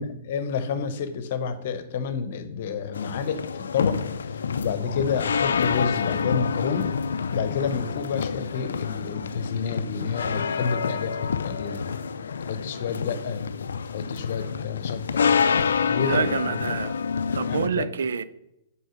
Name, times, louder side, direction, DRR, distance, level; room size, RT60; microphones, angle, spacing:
voice 1, 0.0-4.0 4.3-6.9 7.3-11.8 12.4-13.4 13.9-15.3 15.8-16.6 17.4-17.9, left 6 dB, 60° left, 11 dB, 0.9 m, -30 dB
sound 1, 2.9-17.7, left 6 dB, 75° left, 0.4 m, -27 dB
voice 2, 16.0-17.0 17.3-18.2, right 6 dB, 75° right, 15 dB, 0.5 m, -27 dB
6.5 x 4.7 x 6.3 m, 0.84 s
hypercardioid pair, 120°, 0 cm